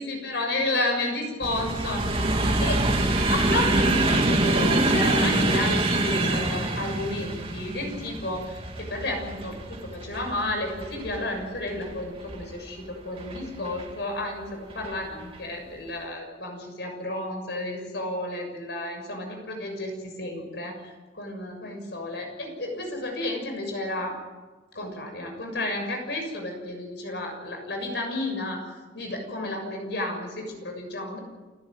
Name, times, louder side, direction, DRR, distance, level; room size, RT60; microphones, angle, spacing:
voice 1, 0.0-2.0 2.6-2.9 3.3-14.5 14.7-24.1 24.7-28.6 28.9-31.2, left 1 dB, 65° left, 3 dB, 6.8 m, -32 dB
sound 1, 1.4-12.5 13.2-13.8 14.7-14.9 15.2-15.4, right 2 dB, 30° right, 2.7 m, -25 dB
29.5 x 13.0 x 9.3 m, 1.3 s
head